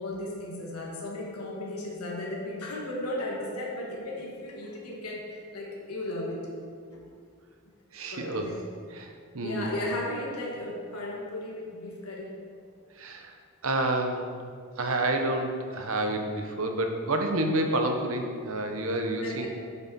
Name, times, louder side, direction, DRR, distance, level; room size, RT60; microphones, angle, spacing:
voice 1, 0.0-6.4 8.1-8.6 9.4-12.3 19.2-19.5, left 1 dB, 85° left, -3 dB, 1.6 m, -35 dB
voice 2, 7.9-8.5 8.9-9.7 13.0-13.3 13.6-14.3 14.8-19.5, right 1 dB, 65° right, 5 dB, 0.9 m, -29 dB
8.0 x 7.6 x 4.2 m, 2.1 s
head